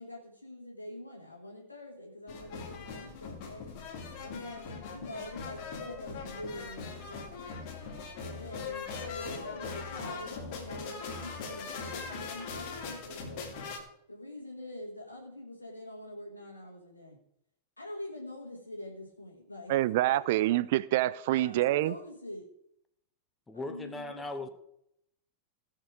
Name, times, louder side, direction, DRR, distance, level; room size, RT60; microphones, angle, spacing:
voice 1, 0.0-3.7 4.2-7.5 8.2-13.6 14.1-17.2 17.8-20.2 21.3-22.5 23.5-24.5, left 1 dB, 80° left, 1.7 m, -44 dB
sound 1, 2.3-13.8, left 5 dB, 45° left, 2.8 m, -41 dB
voice 2, 19.7-21.9, right 15 dB, 50° right, 0.5 m, -26 dB
voice 3, 23.5-24.5, left 2 dB, 10° left, 1.1 m, -38 dB
17.0 x 6.5 x 5.0 m
figure-of-eight pair, 90°, 0 cm